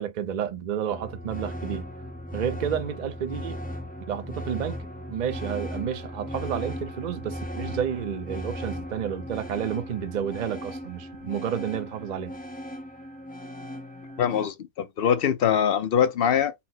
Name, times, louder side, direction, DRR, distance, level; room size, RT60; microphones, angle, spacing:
voice 1, 0.0-1.9 2.3-3.6 4.1-4.8 5.1-12.4, right 8 dB, 45° right, 0.6 m, -30 dB
sound 1, 0.9-14.5, equal, 10° left, 0.5 m, -37 dB
voice 2, 14.2-16.5, left 8 dB, 60° left, 0.7 m, -23 dB
4.2 x 2.0 x 4.0 m
omnidirectional pair, 1.3 m